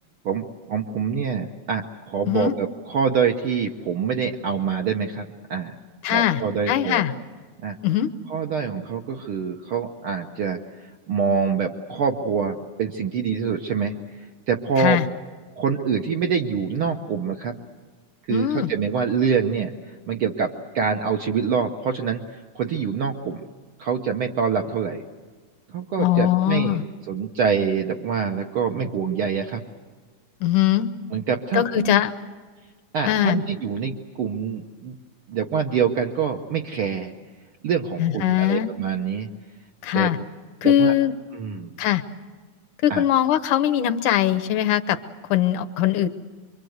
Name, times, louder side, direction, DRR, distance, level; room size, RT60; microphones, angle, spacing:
voice 1, 0.2-5.8 6.1-7.0 7.6-7.8 8.3-13.9 14.5-15.0 15.6-17.6 18.3-19.7 20.1-22.2 22.5-23.4 23.8-25.0 25.7-29.6 31.1-32.0 32.9-34.9 35.3-37.1 37.6-39.3 39.9-40.1 40.6-40.9 41.3-41.7 42.9-43.0, right 6 dB, 65° right, 3 dB, 1.4 m, -25 dB
voice 2, 6.0-6.4 6.7-7.1 7.8-8.1 14.8-15.1 18.3-18.7 26.0-26.8 30.4-30.9 31.5-32.1 33.0-33.4 38.0-38.7 39.8-40.2 40.6-41.1 41.8-42.0 42.8-45.0 45.3-46.1, left 12 dB, 80° left, 10 dB, 2.3 m, -21 dB
26.0 x 24.0 x 8.0 m, 1.4 s
omnidirectional pair, 3.5 m